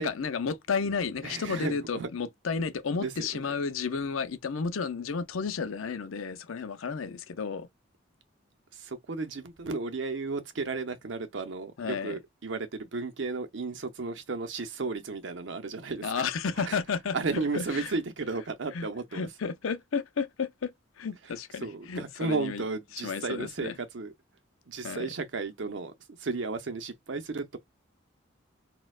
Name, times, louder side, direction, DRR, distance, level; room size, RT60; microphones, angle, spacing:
voice 1, 0.0-7.7 11.8-12.1 16.0-17.9 18.7-18.9 19.1-22.6 22.9-23.7 24.8-25.1, left 5 dB, 90° left, 0.6 m, -32 dB
voice 2, 1.2-2.1 3.0-3.4 8.7-16.3 16.7-16.8 17.1-19.3 21.6-24.1 24.7-27.6, right 3 dB, 70° right, 0.7 m, -34 dB
4.2 x 2.2 x 2.3 m
head